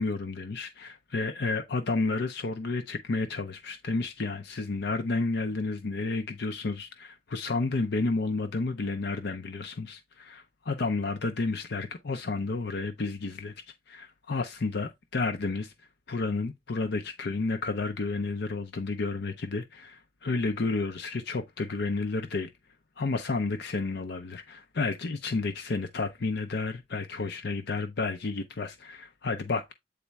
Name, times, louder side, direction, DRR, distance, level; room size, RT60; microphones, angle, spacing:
voice 1, 0.0-13.5 13.9-15.7 16.1-22.5 23.0-29.7, left 3 dB, 60° left, 0.6 m, -31 dB
8.4 x 4.1 x 3.4 m
head